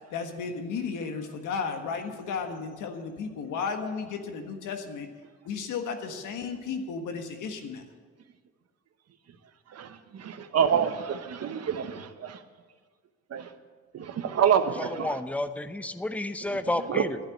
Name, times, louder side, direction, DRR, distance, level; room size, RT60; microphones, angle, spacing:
voice 1, 0.1-5.1 5.4-7.8, left 5 dB, 85° left, 5 dB, 1.6 m, -34 dB
voice 2, 9.7-12.4 13.3-13.5 13.9-15.2 16.5-16.6 16.9-17.0, right 8 dB, 55° right, 9 dB, 1.1 m, -27 dB
voice 3, 14.8-17.2, left 1 dB, 5° left, 11 dB, 0.7 m, -31 dB
11.5 x 9.0 x 8.5 m, 1.6 s
cardioid pair, 90°, 30 cm